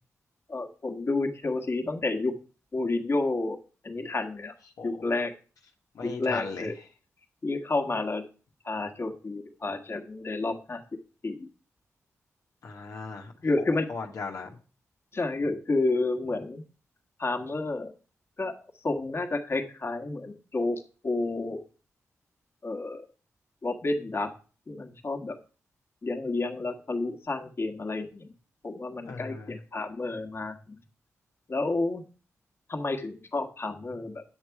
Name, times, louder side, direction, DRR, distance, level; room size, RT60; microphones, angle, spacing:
voice 1, 0.5-2.3 2.7-3.6 3.8-4.5 4.8-5.3 6.0-6.7 7.4-8.2 8.6-10.8 11.2-11.5 13.4-13.9 15.1-16.6 17.2-17.9 18.4-18.5 18.8-21.6 22.6-23.1 23.6-24.3 24.7-25.3 26.0-28.3 28.6-30.8 31.5-32.0 32.7-34.2, left 2 dB, 45° left, 1.7 m, -30 dB
voice 2, 5.9-6.7 12.6-13.3 13.9-14.5 29.1-29.5, left 4 dB, 80° left, 1.5 m, -37 dB
9.6 x 6.7 x 4.8 m
cardioid pair, 60°, 6 cm